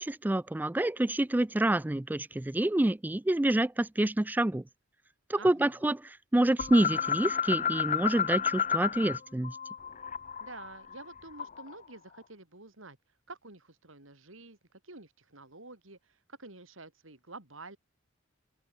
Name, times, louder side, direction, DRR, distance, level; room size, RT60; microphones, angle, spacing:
voice 1, 0.0-4.6 5.3-6.0 6.3-9.6, right 1 dB, 10° right, 0.3 m, -27 dB
voice 2, 5.4-5.9 10.4-13.0 13.3-17.8, right 3 dB, 75° right, 3.9 m, -49 dB
sound 1, 6.6-9.2 9.4-11.7, left 8 dB, 40° left, 1.1 m, -31 dB
head